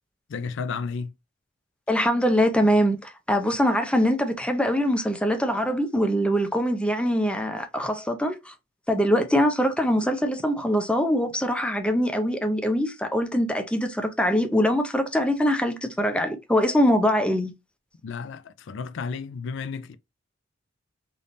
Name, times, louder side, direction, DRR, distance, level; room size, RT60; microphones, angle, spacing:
voice 1, 0.3-1.1 18.0-19.9, left 5 dB, 65° left, 0.4 m, -32 dB
voice 2, 1.9-8.5 8.9-17.5, equal, 5° left, 0.5 m, -23 dB
3.4 x 2.7 x 2.5 m
head